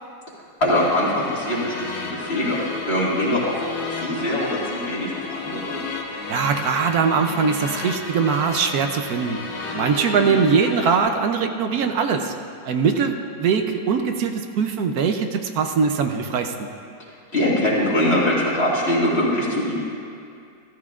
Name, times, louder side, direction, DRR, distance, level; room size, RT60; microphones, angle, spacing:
voice 1, 0.6-3.6 3.9-5.8 10.1-10.4 17.3-19.8, left 1 dB, 40° left, -7 dB, 2.3 m, -22 dB
sound 1, 0.7-11.0, left 3 dB, 75° left, 1.6 m, -33 dB
voice 2, 6.3-9.4 9.7-12.3 12.6-16.7, right 6 dB, 75° right, 6 dB, 1.1 m, -21 dB
14.5 x 13.5 x 2.4 m, 2.5 s
omnidirectional pair, 1.7 m